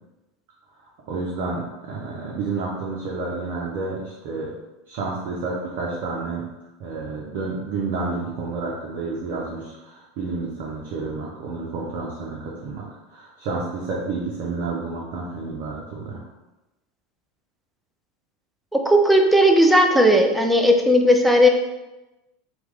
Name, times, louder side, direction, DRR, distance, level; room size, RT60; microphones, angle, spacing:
voice 1, 1.1-4.5 4.9-6.5 6.8-16.2, right 3 dB, 60° right, -4 dB, 0.6 m, -30 dB
voice 2, 18.7-21.5, equal, 5° right, 3 dB, 0.4 m, -16 dB
3.0 x 2.2 x 3.5 m, 1.0 s
hypercardioid pair, 85°, 0 cm